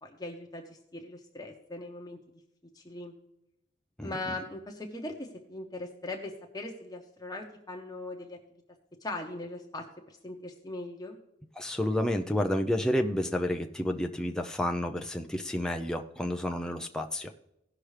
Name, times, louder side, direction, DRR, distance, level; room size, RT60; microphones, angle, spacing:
voice 1, 0.0-2.2 2.7-3.1 4.0-8.4 9.0-11.2, left 2 dB, 20° left, 1 dB, 1.0 m, -40 dB
voice 2, 11.6-17.3, left 1 dB, 5° left, 3 dB, 0.5 m, -30 dB
17.5 x 5.9 x 3.3 m, 0.83 s
head